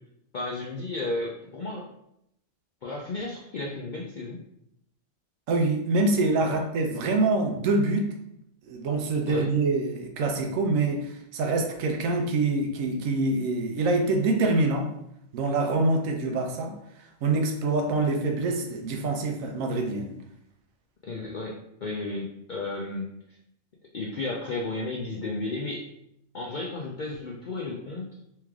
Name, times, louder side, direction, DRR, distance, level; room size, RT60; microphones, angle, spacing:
voice 1, 0.3-1.8 2.8-4.4 6.4-6.6 9.3-9.5 21.0-23.4 23.9-25.8 26.3-28.1, left 2 dB, 75° left, -2 dB, 0.4 m, -33 dB
voice 2, 5.5-8.1 8.6-14.9 15.3-20.1, right 2 dB, 75° right, 3 dB, 1.1 m, -25 dB
3.3 x 3.2 x 3.5 m, 0.78 s
omnidirectional pair, 1.4 m